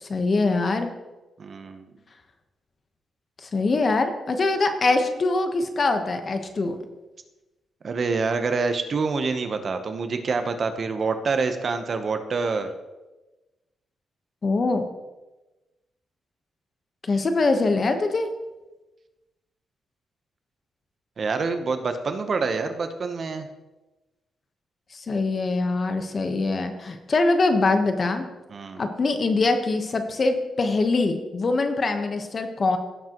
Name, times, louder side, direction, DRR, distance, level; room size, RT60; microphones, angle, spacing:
voice 1, 0.1-0.9 3.4-6.8 14.4-14.8 17.1-18.3 24.9-28.3 28.8-32.8, left 3 dB, 40° left, 6 dB, 1.1 m, -23 dB
voice 2, 1.4-1.9 7.8-12.7 21.2-23.5 28.5-28.8, right 4 dB, 50° right, 8 dB, 0.9 m, -26 dB
16.5 x 7.4 x 3.0 m, 1.1 s
cardioid pair, 100°, 0 cm